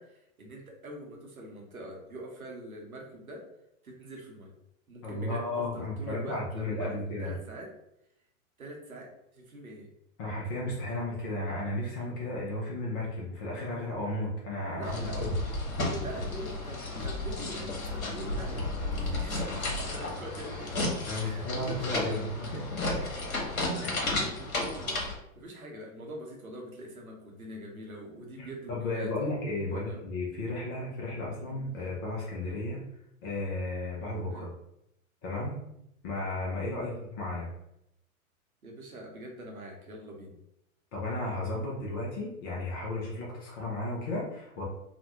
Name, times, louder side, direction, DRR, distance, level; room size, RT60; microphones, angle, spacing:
voice 1, 0.0-3.4 3.8-4.5 4.9-7.7 8.6-9.9 14.7-15.3 15.9-22.5 23.7-25.0 25.4-29.3 29.7-30.1 31.5-31.6 34.3-34.5 36.8-37.0 38.6-40.3, right 1 dB, 80° right, 0 dB, 0.8 m, -44 dB
voice 2, 5.0-7.4 10.2-15.3 21.1-22.9 23.8-23.9 28.4-32.8 33.2-34.5 35.2-35.6 36.0-37.5 40.9-44.6, left 2 dB, 20° left, -4 dB, 0.3 m, -34 dB
sound 1, 14.8-25.1, left 2 dB, 80° left, 0.8 m, -33 dB
2.4 x 2.1 x 2.8 m, 0.80 s
figure-of-eight pair, 100°, 42 cm